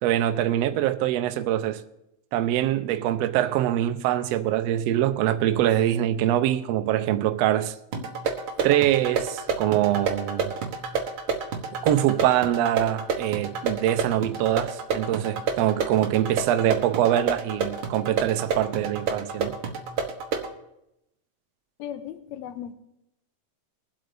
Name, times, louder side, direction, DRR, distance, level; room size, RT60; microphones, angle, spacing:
voice 1, 0.0-1.8 2.3-7.7 8.6-10.5 11.8-19.6, right 12 dB, 75° right, 1.6 m, -24 dB
sound 1, 7.9-20.5, right 5 dB, 55° right, 1.6 m, -30 dB
voice 2, 21.8-22.7, left 10 dB, 75° left, 1.9 m, -37 dB
22.0 x 7.9 x 3.4 m
omnidirectional pair, 3.5 m